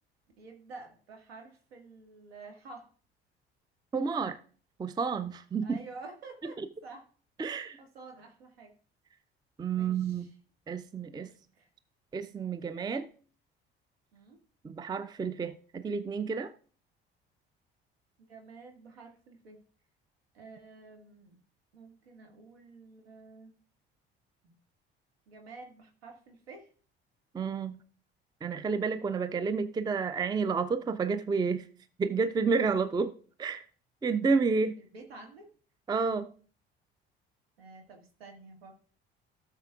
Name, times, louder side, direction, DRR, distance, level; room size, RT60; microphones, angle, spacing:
voice 1, 0.4-2.9 5.6-7.1 7.8-8.7 9.8-10.3 11.0-11.7 14.1-14.4 18.2-19.6 20.3-21.4 21.7-23.5 24.4-24.5 25.3-26.7 34.8-35.5 37.6-38.8, right 3 dB, 75° right, 2.0 m, -50 dB
voice 2, 3.9-4.4 4.8-5.8 6.4-6.7 7.4-7.8 9.6-10.3 10.7-11.3 12.1-13.1 14.6-16.5 27.3-27.8 28.4-31.7 32.0-33.1 33.4-33.6 34.0-34.8 35.9-36.3, right 5 dB, 15° right, 0.5 m, -30 dB
17.0 x 6.6 x 2.5 m
figure-of-eight pair, 55°, 31 cm